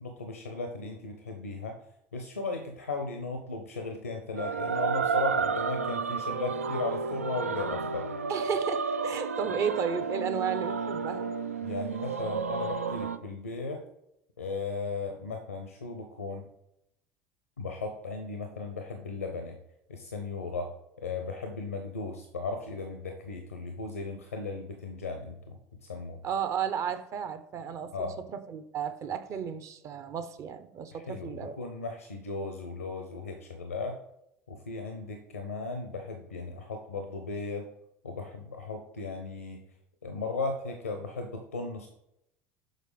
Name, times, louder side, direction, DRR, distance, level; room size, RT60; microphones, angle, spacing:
voice 1, 0.0-1.8 2.1-8.1 11.6-13.8 14.4-16.5 17.6-19.6 19.9-20.7 21.0-26.2 27.9-28.2 30.9-34.0 34.5-37.7 38.0-39.6 40.0-41.9, left 3 dB, 85° left, 0.7 m, -36 dB
sound 1, 4.4-13.2, right 5 dB, 85° right, 0.4 m, -31 dB
voice 2, 8.3-11.3 26.2-31.6, right 7 dB, 40° right, 0.8 m, -33 dB
6.5 x 4.6 x 5.0 m
figure-of-eight pair, 70°, 7 cm